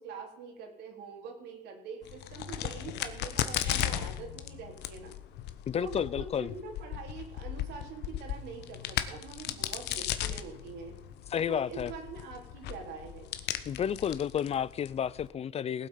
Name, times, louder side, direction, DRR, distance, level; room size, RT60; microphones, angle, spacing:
voice 1, 0.0-5.1 5.7-11.0 11.5-13.3, right 5 dB, 85° right, 2 dB, 3.6 m, -44 dB
Crack, 2.0-15.3, left 12 dB, 80° left, 1.0 m, -37 dB
voice 2, 5.7-6.5 11.3-11.9 13.7-15.9, left 8 dB, 40° left, 21 dB, 0.4 m, -31 dB
18.5 x 8.4 x 5.6 m, 0.89 s
cardioid pair, 110°, 17 cm